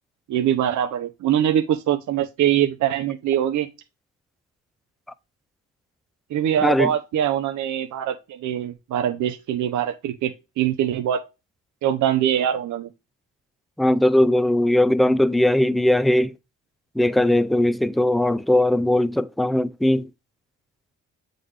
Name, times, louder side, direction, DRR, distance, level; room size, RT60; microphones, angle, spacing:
voice 1, 0.3-3.7 6.3-11.2 11.8-12.9, right 10 dB, 70° right, 0.7 m, -23 dB
voice 2, 13.8-16.3 17.0-20.1, left 1 dB, ahead, 0.4 m, -19 dB
7.8 x 3.9 x 3.3 m
cardioid pair, 90°, 30 cm